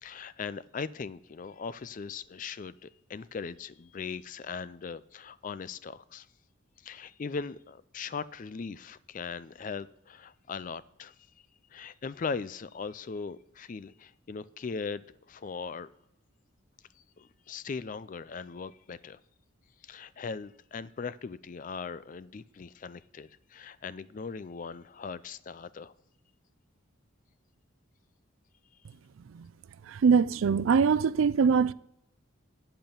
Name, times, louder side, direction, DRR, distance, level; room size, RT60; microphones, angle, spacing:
voice 1, 0.0-6.3 6.8-11.1 11.7-15.9 17.2-19.2 19.8-25.9, left 5 dB, 40° left, 0.3 m, -39 dB
voice 2, 29.9-31.7, right 6 dB, 70° right, 0.4 m, -23 dB
9.0 x 7.8 x 6.8 m
head